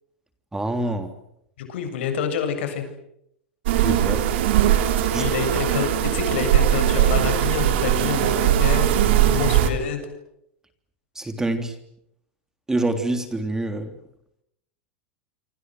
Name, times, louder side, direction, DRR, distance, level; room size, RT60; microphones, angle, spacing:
voice 1, 0.5-1.1 3.8-4.2 5.1-5.3 11.2-11.7 12.7-13.9, right 2 dB, 10° right, 8 dB, 3.4 m, -26 dB
voice 2, 1.6-2.8 5.2-8.9 9.2-10.0, left 7 dB, 75° left, 7 dB, 7.7 m, -27 dB
sound 1, 3.7-9.7, right 11 dB, 70° right, 4.3 m, -20 dB
27.0 x 26.0 x 7.9 m, 0.77 s
supercardioid pair, 125°, 6 cm